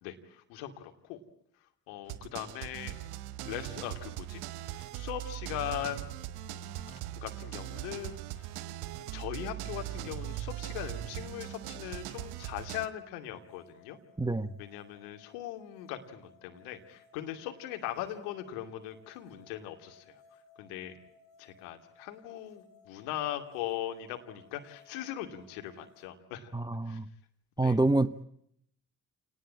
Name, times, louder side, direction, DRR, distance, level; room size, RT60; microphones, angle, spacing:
voice 1, 0.0-1.2 1.9-3.0 3.4-4.4 4.9-6.1 7.2-8.5 9.1-14.0 14.6-20.2 20.6-20.9 21.4-26.5 26.9-27.0 27.6-27.8, left 11 dB, 70° left, 6 dB, 2.6 m, -40 dB
sound 1, 2.1-12.9, right 14 dB, 65° right, 1.5 m, -40 dB
sound 2, 11.5-26.1, left 4 dB, 55° left, 6.1 m, -61 dB
voice 2, 14.2-14.5 26.5-27.1 27.6-28.2, right 2 dB, 10° right, 15 dB, 1.0 m, -27 dB
28.5 x 19.0 x 8.7 m, 0.73 s
figure-of-eight pair, 45°, 42 cm